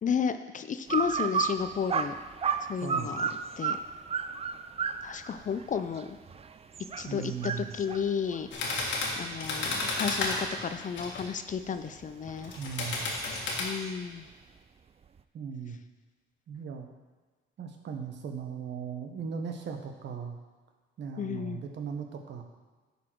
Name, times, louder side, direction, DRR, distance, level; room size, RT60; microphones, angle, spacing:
voice 1, 0.0-2.1 2.7-3.3 3.6-3.8 5.0-6.2 7.0-8.5 9.2-12.5 13.6-14.3 21.2-21.6, left 7 dB, 40° left, 10 dB, 0.5 m, -32 dB
sound 1, 0.9-10.5 11.0-13.9, right 6 dB, 30° right, 0.4 m, -34 dB
voice 2, 2.8-3.2 7.1-7.8 12.6-13.2 15.3-15.8 16.5-16.9 17.6-20.3 21.0-22.4, right 6 dB, 65° right, 4 dB, 1.1 m, -38 dB
sound 2, 8.5-11.3 12.4-13.6, left 3 dB, 75° left, 1.7 m, -32 dB
10.5 x 4.2 x 4.6 m, 1.3 s
cardioid pair, 90°, 20 cm